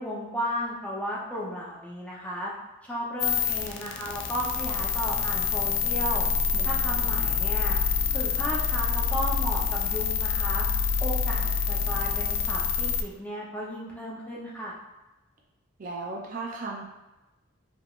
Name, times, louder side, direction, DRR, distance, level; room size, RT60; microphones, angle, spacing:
voice 1, 0.0-2.5 2.8-6.2 6.6-7.8 8.1-10.7 11.0-14.7, equal, 5° left, -5 dB, 0.7 m, -34 dB
sound 1, 3.2-13.0, left 6 dB, 55° left, 0.4 m, -26 dB
voice 2, 6.5-7.3 15.8-16.8, right 3 dB, 40° right, -1 dB, 0.4 m, -37 dB
4.9 x 3.3 x 2.4 m, 1.0 s
head